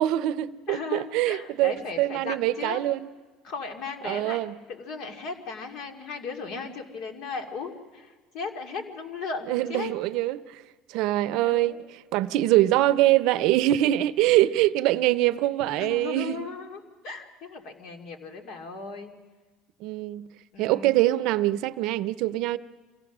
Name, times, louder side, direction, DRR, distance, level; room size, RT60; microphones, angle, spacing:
voice 1, 0.0-3.1 4.0-4.5 9.5-10.6 10.9-11.7 12.1-16.5 19.8-20.3 20.6-22.6, right 15 dB, 70° right, 0.6 m, -24 dB
voice 2, 0.7-2.8 3.4-4.4 4.7-9.9 11.4-11.8 15.0-15.1 15.7-19.1 20.5-20.9, left 4 dB, 65° left, 2.6 m, -36 dB
26.5 x 16.0 x 6.1 m
supercardioid pair, 95°, 0 cm